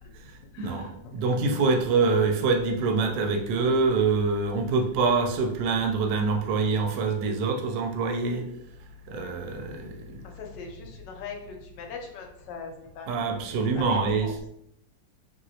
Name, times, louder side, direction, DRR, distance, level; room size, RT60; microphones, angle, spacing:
voice 1, 0.0-1.2 10.2-14.3, left 5 dB, 75° left, 2 dB, 1.2 m, -42 dB
voice 2, 0.6-8.5 9.1-10.2 13.1-14.3, right 4 dB, 75° right, 4 dB, 1.2 m, -25 dB
3.0 x 2.9 x 2.7 m, 0.76 s
omnidirectional pair, 2.0 m